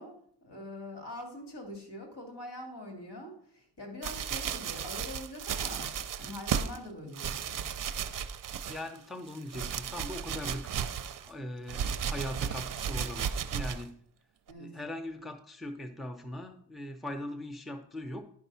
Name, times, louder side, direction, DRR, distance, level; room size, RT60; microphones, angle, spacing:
voice 1, 0.0-5.9 6.2-7.6 14.5-14.7, left 1 dB, 70° left, 2 dB, 2.7 m, -44 dB
sound 1, 4.0-6.8 7.1-9.0 9.3-11.3 11.7-13.9 14.5-14.6, right 8 dB, 50° right, 0.5 m, -34 dB
voice 2, 8.7-13.9 14.6-18.2, left 1 dB, ahead, 4 dB, 0.5 m, -40 dB
10.5 x 5.2 x 5.5 m, 0.63 s
wide cardioid pair, 175°, 40 cm